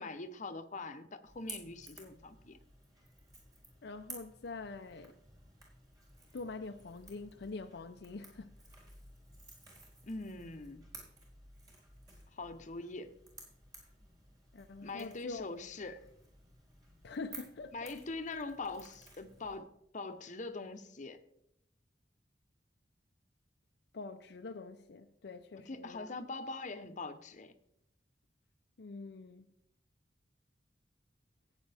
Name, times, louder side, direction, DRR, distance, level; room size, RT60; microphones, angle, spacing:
voice 1, 0.0-2.6 10.0-10.9 12.3-13.1 14.8-16.0 17.7-19.7 19.9-21.2 25.7-27.5, left 3 dB, 45° left, 0.9 m, -43 dB
Crackle / Crack, 1.2-19.6, right 2 dB, 25° right, 4.2 m, -55 dB
voice 2, 3.8-5.2 6.3-8.6 14.5-15.5 17.0-17.9 23.9-26.1 28.8-29.5, left 3 dB, 70° left, 0.5 m, -45 dB
15.5 x 9.1 x 3.4 m
head